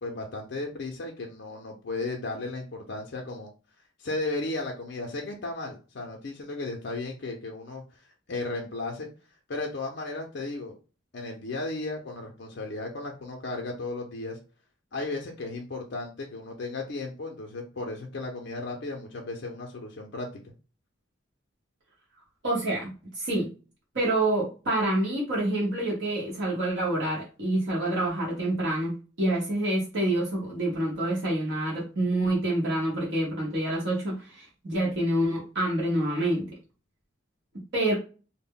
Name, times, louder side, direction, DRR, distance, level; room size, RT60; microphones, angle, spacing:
voice 1, 0.0-3.5 4.0-8.0 8.3-9.1 9.5-10.8 11.1-14.4 14.9-20.4, left 2 dB, 55° left, 1 dB, 0.4 m, -35 dB
voice 2, 22.4-22.9 23.1-23.5 23.9-36.5 37.7-37.9, right 1 dB, 60° right, -5 dB, 0.8 m, -27 dB
2.1 x 2.0 x 3.5 m, 0.35 s
head